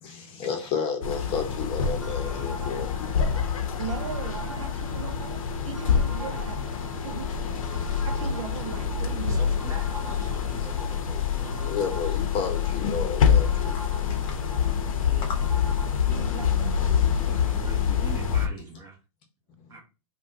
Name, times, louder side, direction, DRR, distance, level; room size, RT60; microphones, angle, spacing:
voice 1, 0.0-2.9 11.6-14.4 15.2-15.4 19.6-19.8, left 6 dB, 30° left, 0.8 m, -32 dB
sound 1, 1.0-18.5, left 7 dB, 75° left, 0.7 m, -26 dB
sound 2, 2.0-16.8, equal, ahead, 0.5 m, -45 dB
voice 2, 3.8-9.7 16.3-17.0, right 8 dB, 60° right, 0.4 m, -39 dB
voice 3, 9.3-12.2 14.7-15.3 16.0-16.3 17.2-19.0 19.7-19.8, right 3 dB, 20° right, 1.0 m, -43 dB
3.4 x 2.2 x 2.6 m
hypercardioid pair, 135°, 18 cm